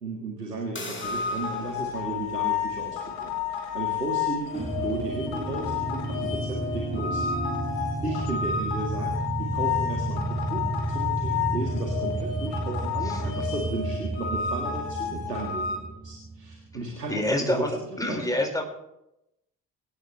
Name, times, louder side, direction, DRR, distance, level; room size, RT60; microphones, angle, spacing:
voice 1, 0.0-7.3 7.7-17.7 18.1-18.3, right 2 dB, 90° right, -1 dB, 2.1 m, -35 dB
sound 1, 0.8-6.3, left 2 dB, 25° left, 5.5 m, -44 dB
sound 2, 1.0-15.8, left 7 dB, 65° left, 4.3 m, -31 dB
sound 3, 4.5-16.8, right 1 dB, 15° right, 5.7 m, -32 dB
voice 2, 13.0-13.5 17.1-18.6, left 1 dB, 10° left, 1 dB, 5.0 m, -28 dB
25.0 x 17.5 x 3.3 m, 0.85 s
figure-of-eight pair, 45°, 47 cm